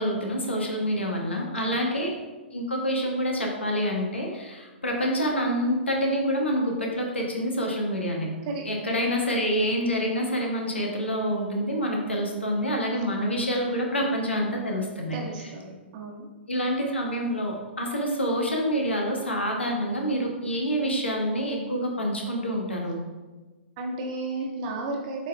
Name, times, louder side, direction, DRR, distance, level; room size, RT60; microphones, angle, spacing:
voice 1, 0.0-2.1 2.5-8.3 8.6-15.1 16.5-23.0, equal, 75° left, 0 dB, 1.4 m, -27 dB
voice 2, 1.5-2.0 8.4-8.6 15.1-16.3 23.8-25.3, right 2 dB, 40° right, -1 dB, 1.4 m, -33 dB
8.1 x 3.9 x 3.5 m, 1.2 s
figure-of-eight pair, 110°, 6 cm